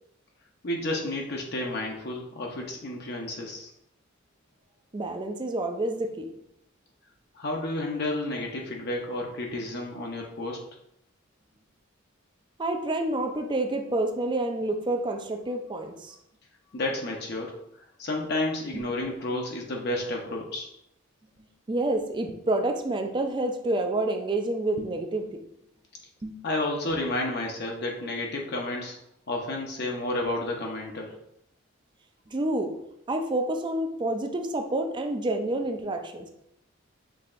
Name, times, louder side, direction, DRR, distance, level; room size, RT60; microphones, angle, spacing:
voice 1, 0.6-3.7 7.3-10.6 16.7-17.5 18.0-20.7 26.4-29.0 29.3-31.1, left 2 dB, 55° left, 0 dB, 0.7 m, -31 dB
voice 2, 4.9-6.3 12.6-16.2 18.7-18.8 21.7-25.4 26.2-26.4 32.3-32.8 33.1-36.3, right 2 dB, 25° right, 5 dB, 0.4 m, -28 dB
6.1 x 3.2 x 2.5 m, 0.77 s
head